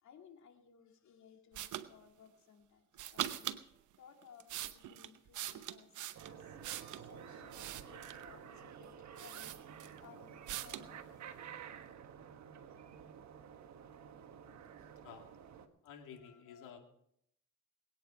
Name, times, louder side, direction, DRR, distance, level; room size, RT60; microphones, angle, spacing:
voice 1, 0.0-2.8 3.1-3.5 4.0-5.9 6.2-9.7 10.0-11.0 14.8-14.9, left 7 dB, 70° left, 4 dB, 2.4 m, -60 dB
sound 1, 1.5-1.9 2.9-3.6 4.2-7.1 7.5-8.3 8.8-8.9 9.2-10.0 10.5-10.9, right 12 dB, 80° right, 0.9 m, -42 dB
sound 2, 6.1-15.7, right 8 dB, 65° right, 1.4 m, -52 dB
voice 2, 15.8-16.8, left 7 dB, 85° left, 2 dB, 2.5 m, -52 dB
21.5 x 9.3 x 4.8 m, 0.72 s
cardioid pair, 90°, 30 cm